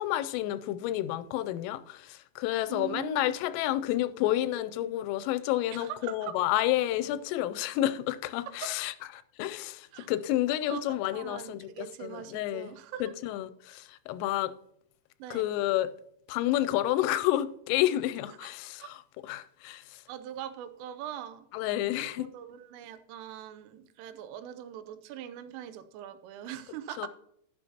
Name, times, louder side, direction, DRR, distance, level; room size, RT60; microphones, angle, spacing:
voice 1, 0.0-8.9 9.4-12.7 13.0-14.5 15.3-15.9 16.3-19.0 19.3-19.8 21.5-22.3 27.0-27.1, left 14 dB, 90° left, 3.2 m, -30 dB
voice 2, 2.7-3.4 5.7-6.4 8.5-8.7 9.9-10.1 10.7-13.1 15.2-15.5 18.4-18.5 18.8-18.9 20.1-21.5 22.0-27.1, right 10 dB, 90° right, 3.3 m, -42 dB
11.5 x 11.0 x 2.9 m
omnidirectional pair, 5.6 m